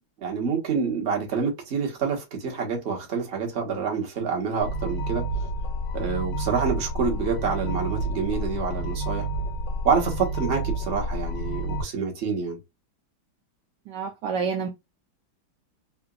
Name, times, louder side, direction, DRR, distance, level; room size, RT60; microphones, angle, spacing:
voice 1, 0.2-5.2 5.9-9.3 9.8-12.6, right 5 dB, 40° right, 1.1 m, -27 dB
sound 1, 4.6-11.8, right 1 dB, 70° left, 1.2 m, -29 dB
voice 2, 13.9-14.7, right 6 dB, 75° right, 1.1 m, -28 dB
3.9 x 2.4 x 2.3 m
omnidirectional pair, 2.2 m